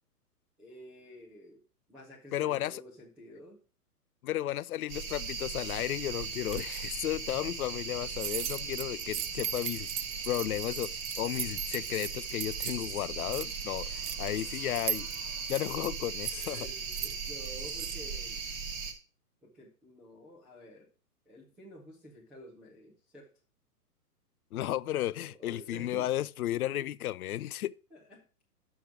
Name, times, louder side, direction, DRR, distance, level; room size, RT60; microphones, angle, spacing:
voice 1, 0.6-1.6 1.9-3.6 16.3-18.5 19.4-20.9 21.3-23.3 25.3-26.1 26.8-26.9 27.9-28.2, equal, 5° right, 0.4 m, -50 dB
voice 2, 2.3-2.8 4.2-9.9 10.3-15.1 15.5-16.7 24.5-27.7, left 13 dB, 65° left, 0.5 m, -33 dB
sound 1, 4.9-18.9, right 5 dB, 30° right, 1.3 m, -38 dB
sound 2, 6.5-6.9 8.1-12.9 13.2-14.4 14.7-18.0, right 10 dB, 85° right, 0.6 m, -38 dB
6.6 x 6.1 x 5.9 m
hypercardioid pair, 125°, 47 cm